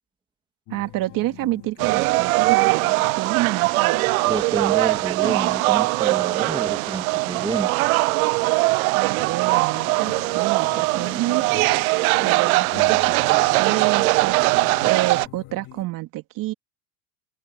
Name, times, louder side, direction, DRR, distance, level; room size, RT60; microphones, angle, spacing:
sound 1, 0.7-5.7 6.1-6.2 6.6-6.8 7.3-7.9 9.2-15.8, left 17 dB, 50° left, 2.4 m, -44 dB
voice 1, 0.7-4.0 8.9-11.7 12.2-14.5 14.8-16.5, right 17 dB, 50° right, 2.5 m, -28 dB
sound 2, 1.8-15.3, right 23 dB, 80° right, 0.7 m, -21 dB
voice 2, 4.3-7.7, right 3 dB, 10° right, 1.9 m, -29 dB
supercardioid pair, 115°, 42 cm